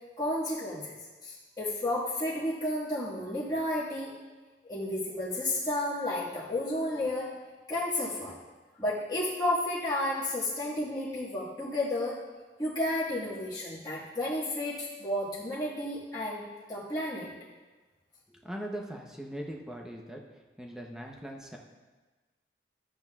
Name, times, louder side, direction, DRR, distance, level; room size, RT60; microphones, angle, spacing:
voice 1, 0.2-0.9 1.2-4.1 4.7-7.3 7.7-8.3 8.8-12.2 12.6-17.3, left 1 dB, 20° left, -10 dB, 1.7 m, -32 dB
voice 2, 18.3-20.2 20.6-21.6, right 1 dB, 5° right, 0 dB, 0.8 m, -40 dB
12.5 x 8.3 x 2.4 m, 1.3 s
head